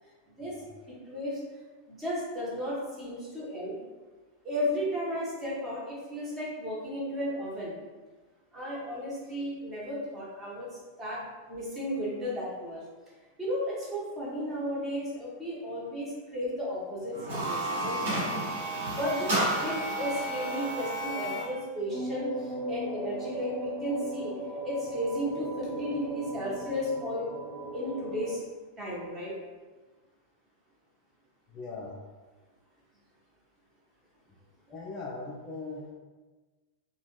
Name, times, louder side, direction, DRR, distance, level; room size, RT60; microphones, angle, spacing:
voice 1, 0.9-1.4 1.9-3.8 4.4-7.7 8.5-11.2 11.5-12.8 13.4-18.2 18.8-24.3 24.6-27.3 27.7-28.4 28.8-29.3, equal, 15° right, -6 dB, 1.1 m, -34 dB
sound 1, 17.1-21.5, right 1 dB, 60° right, 1.2 m, -31 dB
sound 2, 21.9-28.4, right 1 dB, 90° right, 0.7 m, -37 dB
voice 2, 31.5-32.0 34.7-35.9, left 3 dB, 30° left, -3 dB, 0.4 m, -40 dB
2.9 x 2.2 x 3.0 m, 1.3 s
figure-of-eight pair, 90°, 0 cm